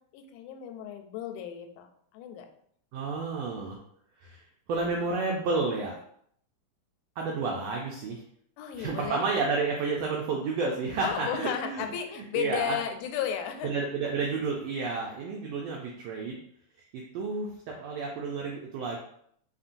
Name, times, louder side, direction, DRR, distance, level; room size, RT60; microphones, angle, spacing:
voice 1, 0.1-1.9 2.1-2.5 8.6-9.3 11.0-13.7, left 9 dB, 90° left, 5 dB, 2.0 m, -34 dB
voice 2, 2.9-3.8 4.2-4.4 4.7-6.0 7.2-8.2 8.8-11.8 12.2-12.8 13.6-16.4 16.9-19.0, right 4 dB, 85° right, -1 dB, 1.4 m, -31 dB
4.1 x 3.6 x 2.5 m, 0.67 s
omnidirectional pair, 3.5 m